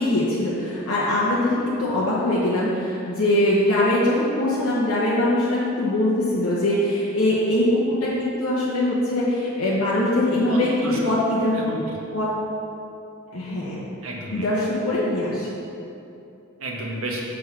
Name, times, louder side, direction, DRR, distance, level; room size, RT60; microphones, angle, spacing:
voice 1, 0.0-11.5 12.1-12.3 13.3-13.8 14.3-15.5, left 1 dB, 90° left, -7 dB, 1.2 m, -22 dB
voice 2, 10.5-11.1 11.5-12.0 14.0-14.5 16.6-17.2, right 1 dB, 80° right, -2 dB, 1.3 m, -31 dB
5.9 x 5.1 x 6.1 m, 2.7 s
head